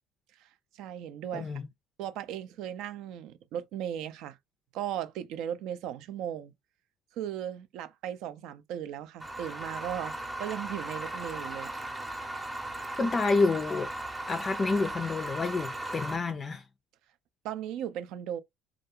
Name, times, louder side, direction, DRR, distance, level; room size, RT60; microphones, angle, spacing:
voice 1, 0.7-1.5 2.0-4.4 4.7-6.5 7.2-11.7 17.4-18.4, right 10 dB, 65° right, 0.4 m, -37 dB
voice 2, 1.3-1.7 13.0-13.9 14.3-16.6, left 3 dB, 30° left, 0.4 m, -28 dB
sound 1, 9.2-16.2, right 1 dB, 15° right, 0.7 m, -37 dB
2.4 x 2.2 x 2.8 m
hypercardioid pair, 70°, 0 cm